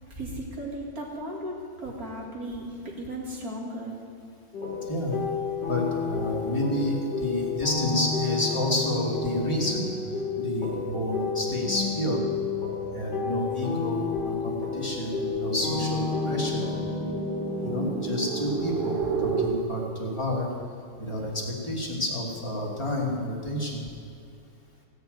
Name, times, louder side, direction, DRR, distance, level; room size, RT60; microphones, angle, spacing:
voice 1, 0.1-4.0, right 1 dB, 45° right, -2 dB, 2.8 m, -36 dB
sound 1, 4.5-17.8, left 5 dB, 60° left, 2.5 m, -31 dB
voice 2, 4.9-5.2 5.7-9.9 10.4-12.2 12.9-16.6 17.6-20.5 21.0-23.8, left 1 dB, 15° left, -3 dB, 2.5 m, -29 dB
sound 2, 11.5-19.5, right 5 dB, 70° right, 3.7 m, -34 dB
16.5 x 7.0 x 9.2 m, 2.4 s
omnidirectional pair, 2.2 m